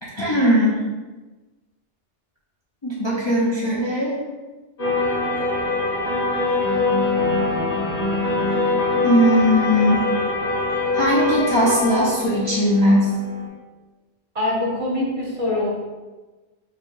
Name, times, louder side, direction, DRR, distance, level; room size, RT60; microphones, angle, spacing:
voice 1, 0.0-0.8 2.8-4.2 9.0-10.1 10.9-13.1, equal, 30° left, -6 dB, 0.7 m, -19 dB
sound 1, 4.8-13.5, left 3 dB, 55° left, 1.8 m, -23 dB
voice 2, 14.3-15.7, left 2 dB, 30° right, -5 dB, 0.9 m, -23 dB
4.8 x 2.3 x 4.7 m, 1.2 s
omnidirectional pair, 1.2 m